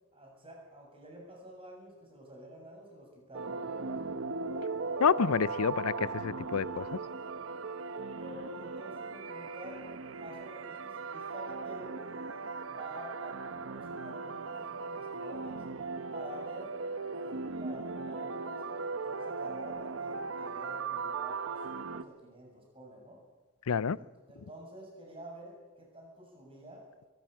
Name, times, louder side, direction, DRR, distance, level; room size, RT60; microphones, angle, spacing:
voice 1, 0.1-4.0 7.9-9.9 10.1-12.0 12.7-15.6 16.1-16.8 17.1-23.2 23.9-26.8, right 1 dB, 25° right, -1 dB, 7.3 m, -49 dB
sound 1, 3.3-22.0, right 4 dB, 65° right, 0.9 m, -38 dB
voice 2, 5.0-6.9 23.7-24.0, left 6 dB, 80° left, 20 dB, 0.5 m, -28 dB
21.5 x 13.5 x 9.0 m, 1.2 s
head